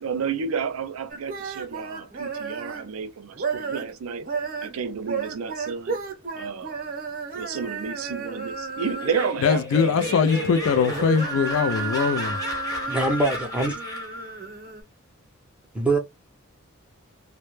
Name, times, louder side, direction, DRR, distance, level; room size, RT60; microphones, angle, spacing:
voice 1, 0.0-4.3 4.6-6.0 6.3-6.7 7.4-10.8, right 6 dB, 80° right, 0.4 m, -31 dB
sound 1, 1.1-2.9 3.3-3.9 4.2-9.4 9.7-14.8, right 4 dB, 45° right, 0.6 m, -32 dB
Laughter, 8.8-14.3, left 1 dB, 15° left, 0.9 m, -34 dB
voice 2, 9.4-12.4, left 6 dB, 75° left, 0.4 m, -22 dB
voice 3, 12.9-13.8 15.7-16.0, right 2 dB, 5° right, 0.6 m, -23 dB
2.1 x 2.0 x 3.0 m
head